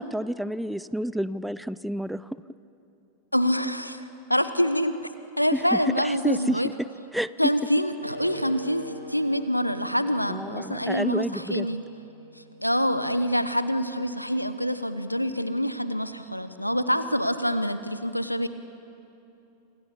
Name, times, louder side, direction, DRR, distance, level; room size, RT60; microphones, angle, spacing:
voice 1, 0.0-2.4 5.5-6.7 7.1-7.3 10.3-11.7, equal, ahead, 17 dB, 0.5 m, -29 dB
voice 2, 3.3-4.0 4.3-5.0 5.4-6.7 7.4-11.8 12.6-18.5, equal, 90° left, 12 dB, 1.2 m, -26 dB
sound 1, 8.0-13.1, right 1 dB, 85° right, 2.6 m, -43 dB
28.0 x 27.0 x 7.1 m, 2.9 s
figure-of-eight pair, 90°, 0 cm